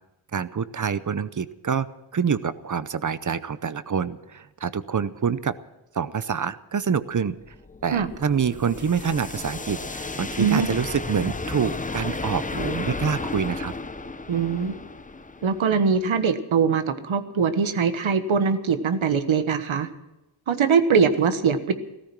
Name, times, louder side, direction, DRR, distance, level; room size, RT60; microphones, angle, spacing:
voice 1, 0.3-1.9 2.1-5.5 5.9-7.4 7.8-13.7, right 6 dB, 40° right, 15 dB, 0.7 m, -26 dB
sound 1, 7.3-16.2, left 3 dB, 15° left, 0.7 m, -34 dB
voice 2, 10.4-10.7 14.3-14.7 15.4-19.9 20.5-21.7, right 6 dB, 85° right, 9 dB, 1.3 m, -22 dB
16.5 x 14.0 x 6.0 m, 0.95 s
wide cardioid pair, 145°, 46 cm